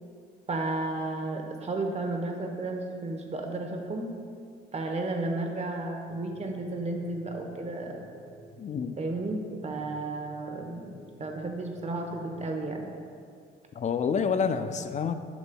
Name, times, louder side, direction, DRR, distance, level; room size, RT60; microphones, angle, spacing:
voice 1, 0.5-4.1 4.7-8.0 9.0-10.9 11.2-12.9, right 2 dB, 35° right, 3 dB, 0.9 m, -33 dB
sound 1, 6.1-12.9, equal, 85° left, 1.4 m, -52 dB
voice 2, 8.6-8.9 13.8-15.1, left 6 dB, 35° left, 9 dB, 0.4 m, -28 dB
8.7 x 6.2 x 2.2 m, 2.2 s
cardioid pair, 90°, 20 cm